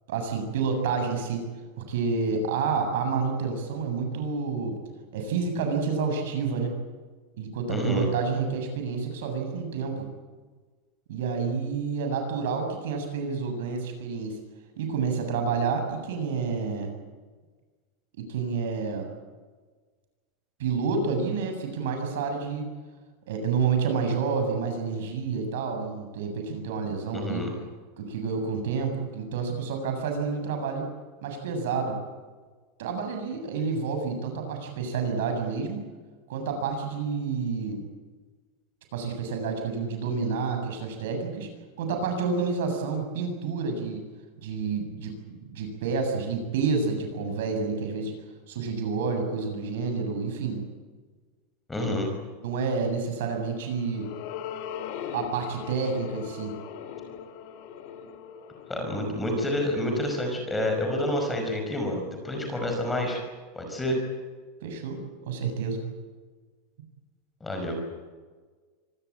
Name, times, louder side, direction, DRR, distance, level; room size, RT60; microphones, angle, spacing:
voice 1, 0.1-1.4 1.8-4.8 5.1-6.7 7.4-10.1 11.1-14.4 14.8-16.9 18.2-19.1 20.6-22.7 23.3-27.4 28.0-30.9 31.2-32.0 32.8-35.8 36.3-37.9 38.9-41.5 41.8-44.0 44.4-45.1 45.5-48.1 48.5-50.6 52.4-54.1 55.1-56.5 64.6-65.0 65.2-65.8, right 5 dB, 70° right, 5 dB, 7.5 m, -29 dB
voice 2, 7.7-8.1 27.1-27.5 51.7-52.1 58.7-63.2 63.6-64.0 67.4-67.8, left 1 dB, 10° left, 3 dB, 5.2 m, -28 dB
sound 1, 53.4-59.9, left 8 dB, 45° left, 2.8 m, -40 dB
25.0 x 19.0 x 8.8 m, 1.4 s
supercardioid pair, 175°, 0 cm